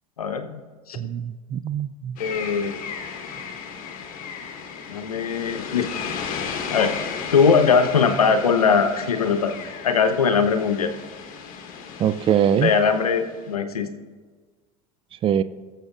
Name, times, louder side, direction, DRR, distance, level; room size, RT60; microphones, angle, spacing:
voice 1, 0.2-0.6 0.9-1.0 2.2-2.8 4.9-5.9 6.7-7.0 7.3-9.5 9.8-10.9 12.6-13.9, left 5 dB, 85° left, 9 dB, 0.8 m, -20 dB
voice 2, 1.0-2.2 12.0-12.7 15.2-15.4, right 9 dB, 30° right, 13 dB, 0.4 m, -22 dB
sound 1, 2.2-13.5, left 6 dB, 45° left, 1.2 m, -35 dB
20.5 x 7.2 x 2.4 m, 1.5 s
hypercardioid pair, 80°, 19 cm